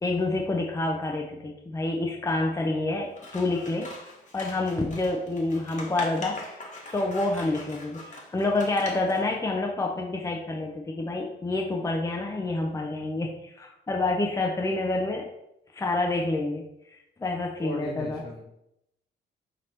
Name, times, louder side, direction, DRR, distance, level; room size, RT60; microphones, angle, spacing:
voice 1, 0.0-3.9 4.3-6.4 6.9-15.2 15.7-16.6 16.9-18.2, left 2 dB, 15° left, 1 dB, 0.5 m, -28 dB
Scissors, 3.1-9.2, left 2 dB, 40° left, 1.0 m, -42 dB
voice 2, 17.6-18.4, equal, 55° left, -2 dB, 1.7 m, -37 dB
5.8 x 2.8 x 3.2 m, 0.84 s
cardioid pair, 90°, 20 cm